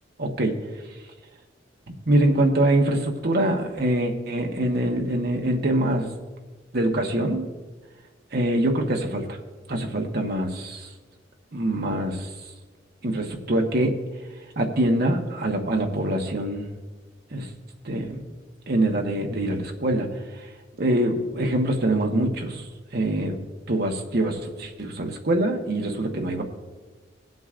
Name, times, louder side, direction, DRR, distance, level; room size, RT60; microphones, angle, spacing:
voice 1, 0.2-0.5 2.1-6.1 6.7-7.5 8.3-9.4 9.7-10.9 11.5-12.3 13.0-14.0 14.6-16.7 17.3-17.5 17.8-18.2 18.7-20.1 20.8-22.6 22.9-23.4 23.7-26.4, right 1 dB, 55° right, 2 dB, 1.2 m, -24 dB
22.5 x 7.8 x 2.5 m, 1.3 s
head